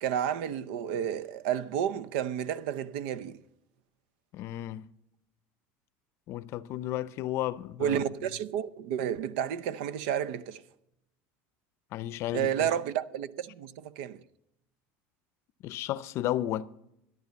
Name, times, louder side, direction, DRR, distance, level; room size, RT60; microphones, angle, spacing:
voice 1, 0.0-3.4 7.8-10.6 12.3-14.2, right 9 dB, 80° right, 0.6 m, -31 dB
voice 2, 4.3-4.9 6.3-8.0 11.9-12.7 15.6-16.7, left 13 dB, 50° left, 0.6 m, -33 dB
13.5 x 10.5 x 7.0 m
cardioid pair, 135°, 6 cm